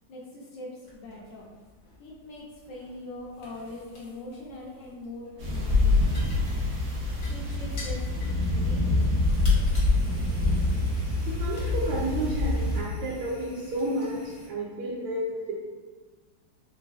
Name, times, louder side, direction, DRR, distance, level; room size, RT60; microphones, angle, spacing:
voice 1, 0.1-1.5 2.0-6.2 7.3-9.1, left 2 dB, 75° left, -4 dB, 1.1 m, -42 dB
sound 1, 0.8-14.5, left 1 dB, 50° left, 0.9 m, -49 dB
sound 2, 5.4-12.8, left 2 dB, 60° right, 0.8 m, -25 dB
voice 2, 11.3-15.5, right 1 dB, 85° right, -5 dB, 1.4 m, -31 dB
3.8 x 3.2 x 2.4 m, 1.4 s
omnidirectional pair, 2.3 m